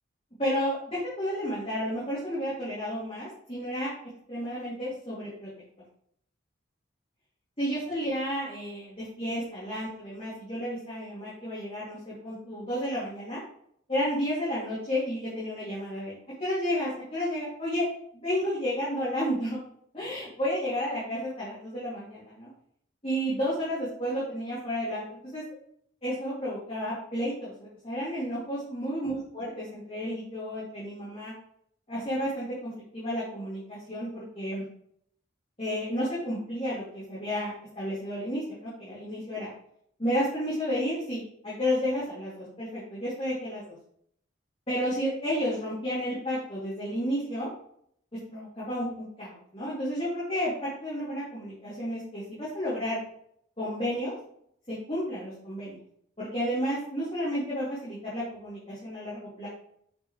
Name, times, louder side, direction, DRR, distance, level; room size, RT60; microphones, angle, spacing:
voice 1, 0.4-3.9 4.3-5.5 7.6-13.4 13.9-17.9 18.1-19.6 19.9-22.5 23.0-25.4 26.0-31.3 31.9-34.6 35.6-39.5 40.0-43.6 44.7-47.5 48.3-53.0 53.6-54.1 54.7-55.8 56.2-59.5, equal, 30° left, -10 dB, 2.6 m, -32 dB
8.5 x 5.5 x 3.2 m, 0.68 s
head